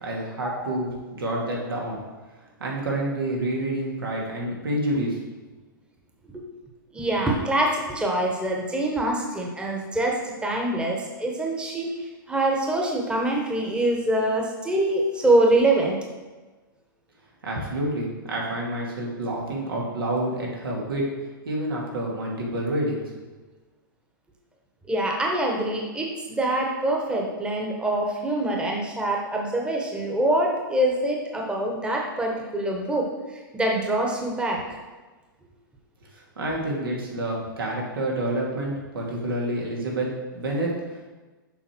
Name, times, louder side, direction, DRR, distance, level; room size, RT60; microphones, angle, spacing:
voice 1, 0.0-2.0 2.6-5.2 17.4-21.2 21.4-23.0 36.1-41.1, right 1 dB, 85° right, -2 dB, 2.3 m, -28 dB
voice 2, 6.9-16.0 24.9-34.6, right 1 dB, 10° right, 0 dB, 1.1 m, -25 dB
7.1 x 5.4 x 4.5 m, 1.3 s
hypercardioid pair, 125°, 12 cm